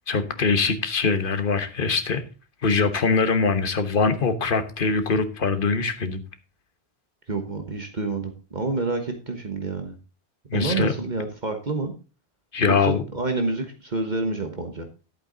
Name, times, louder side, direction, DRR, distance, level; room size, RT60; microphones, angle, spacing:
voice 1, 0.1-2.2 2.6-6.2 10.5-10.9 12.5-13.0, left 4 dB, 60° left, 10 dB, 1.3 m, -23 dB
voice 2, 7.3-10.0 10.5-11.9 12.7-14.9, right 3 dB, 45° right, 6 dB, 1.4 m, -28 dB
11.5 x 8.2 x 3.9 m, 0.32 s
omnidirectional pair, 1.0 m